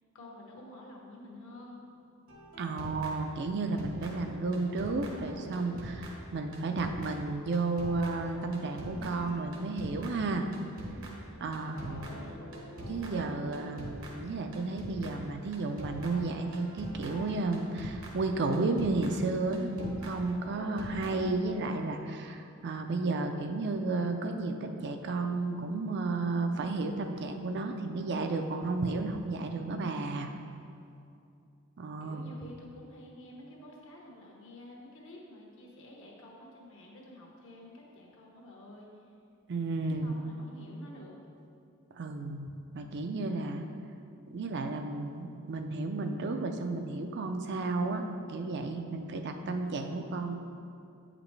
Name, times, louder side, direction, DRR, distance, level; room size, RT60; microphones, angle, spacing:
voice 1, 0.1-1.8 11.4-12.4 32.0-38.9 39.9-41.1, left 1 dB, 65° left, -2 dB, 1.2 m, -49 dB
sound 1, 2.3-3.5 3.8-21.6, right 1 dB, 75° right, 1.1 m, -44 dB
voice 2, 2.6-10.5 11.4-12.0 12.9-30.3 31.8-32.3 39.5-40.2 41.9-42.5 42.7-43.6 44.3-50.3, right 3 dB, 55° right, 5 dB, 0.5 m, -32 dB
8.5 x 5.0 x 3.2 m, 2.5 s
head